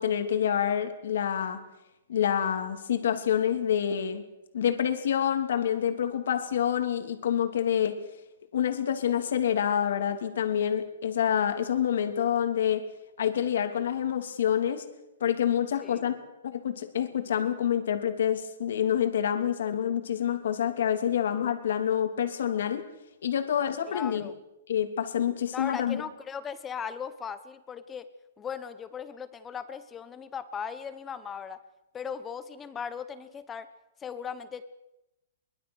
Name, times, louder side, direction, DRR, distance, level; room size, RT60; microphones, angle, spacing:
voice 1, 0.0-1.6 2.1-4.2 4.5-8.0 8.5-12.8 13.2-14.8 15.2-16.1 16.4-22.8 23.2-24.3 24.7-26.0, left 9 dB, 70° left, 7 dB, 3.0 m, -27 dB
voice 2, 23.9-24.3 25.5-28.1 28.4-31.6 31.9-33.7 34.0-34.7, left 7 dB, 15° left, 12 dB, 1.1 m, -38 dB
24.0 x 21.0 x 6.5 m, 0.93 s
hypercardioid pair, 160°, 0 cm